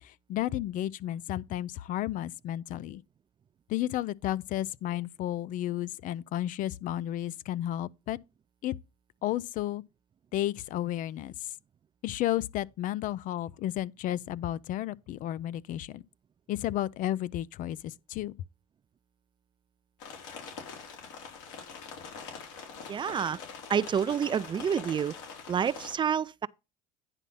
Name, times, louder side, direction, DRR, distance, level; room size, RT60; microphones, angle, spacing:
voice 1, 0.0-3.0 3.7-8.2 8.6-8.7 9.2-9.8 10.3-11.5 12.0-16.0 16.5-18.3, left 13 dB, 55° left, 0.5 m, -32 dB
sound 1, 20.0-25.9, left 5 dB, 80° left, 4.2 m, -44 dB
voice 2, 22.9-23.4 23.7-25.2 25.5-26.5, right 7 dB, 30° right, 0.4 m, -28 dB
10.0 x 4.1 x 5.5 m
supercardioid pair, 95°, 17 cm